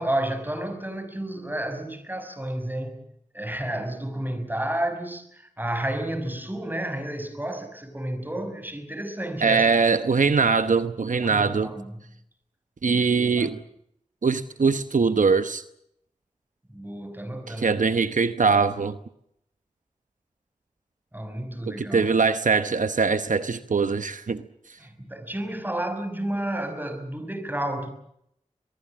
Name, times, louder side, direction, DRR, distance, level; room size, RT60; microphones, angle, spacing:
voice 1, 0.0-3.0 3.3-9.7 11.2-12.1 12.9-13.6 16.7-17.8 21.1-22.1 24.8-27.9, right 1 dB, 15° right, 5.5 m, -31 dB
voice 2, 9.4-11.7 12.8-13.6 14.2-15.6 17.6-19.0 21.7-24.4, right 5 dB, 80° right, 1.0 m, -22 dB
23.5 x 22.5 x 7.4 m
wide cardioid pair, 50°, 13 cm